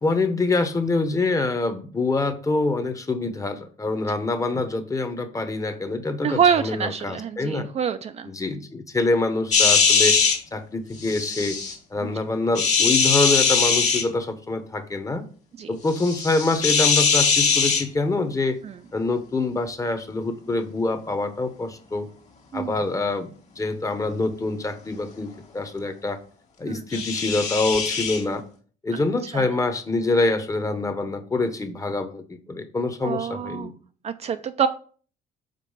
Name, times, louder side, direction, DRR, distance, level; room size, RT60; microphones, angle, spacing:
voice 1, 0.0-7.7 8.2-10.2 10.5-11.6 11.9-15.2 15.7-18.6 18.9-22.1 22.5-23.3 23.6-26.2 26.6-28.4 28.8-33.7, left 3 dB, 20° left, 9 dB, 0.9 m, -25 dB
voice 2, 6.2-8.3 12.0-12.1 15.6-15.7 18.6-18.8 22.5-22.7 26.6-27.0 29.3-29.5 33.0-33.7 34.0-34.7, right 7 dB, 40° right, 9 dB, 0.4 m, -25 dB
sound 1, 9.5-10.4 11.0-11.7 12.5-14.0 15.9-17.8 26.9-28.2, left 5 dB, 45° left, 1.7 m, -21 dB
5.2 x 4.2 x 5.5 m, 0.43 s
cardioid pair, 110°, 17 cm